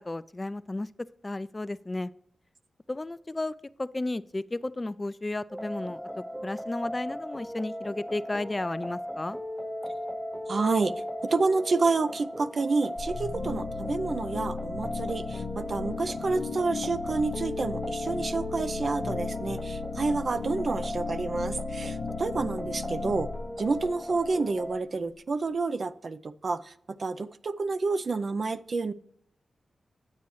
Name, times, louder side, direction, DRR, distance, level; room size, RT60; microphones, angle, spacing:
voice 1, 0.0-2.1 2.9-6.0 6.4-9.4, left 2 dB, 30° left, 17 dB, 0.3 m, -33 dB
sound 1, 5.5-24.8, equal, 10° right, 0.6 m, -37 dB
voice 2, 10.5-23.3 23.6-26.7 27.0-28.9, right 3 dB, 60° right, 13 dB, 0.4 m, -29 dB
sound 2, 13.0-24.7, left 5 dB, 75° left, 0.7 m, -36 dB
9.6 x 8.2 x 3.1 m, 0.72 s
supercardioid pair, 40°, 0 cm